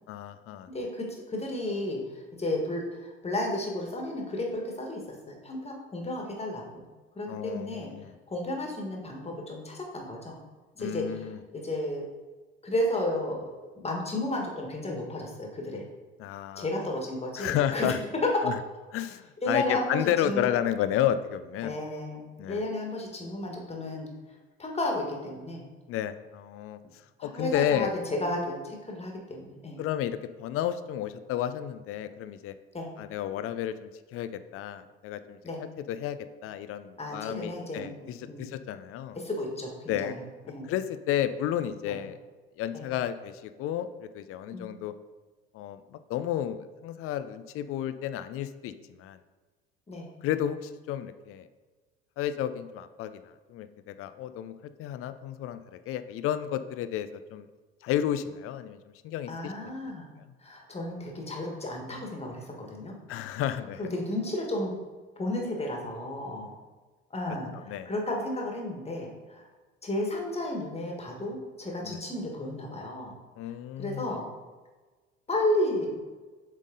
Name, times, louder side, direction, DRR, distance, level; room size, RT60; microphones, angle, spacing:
voice 1, 0.1-0.7 7.3-8.1 10.8-11.4 16.2-16.7 17.4-18.0 18.4-18.5 18.9-21.8 22.4-22.6 25.9-26.8 27.2-28.0 29.8-32.5 33.0-35.4 35.9-39.2 39.9-40.1 40.7-42.2 42.6-44.9 45.5-48.7 49.0-49.2 50.2-51.5 52.2-53.2 53.5-54.5 54.8-55.6 55.9-57.5 57.8-58.8 59.0-59.7 63.1-63.8 67.7-67.9 71.8-72.0 73.4-74.2, left 11 dB, 50° left, 11 dB, 0.5 m, -32 dB
voice 2, 0.7-6.8 7.2-7.9 8.3-10.4 10.8-12.0 12.6-15.8 16.6-17.9 19.4-20.5 21.6-24.1 24.6-25.7 27.2-29.8 32.7-32.9 35.4-35.6 37.0-37.9 38.3-38.5 39.1-40.7 41.8-42.0 42.7-42.8 44.5-44.7 49.9-50.1 59.3-60.1 60.4-63.0 63.8-64.7 65.2-66.5 67.1-69.5 69.8-73.2 73.4-73.5 73.8-74.3 75.3-76.0, left 1 dB, 20° left, 0 dB, 1.6 m, -33 dB
7.4 x 3.7 x 3.9 m, 1.3 s
hypercardioid pair, 65°, 30 cm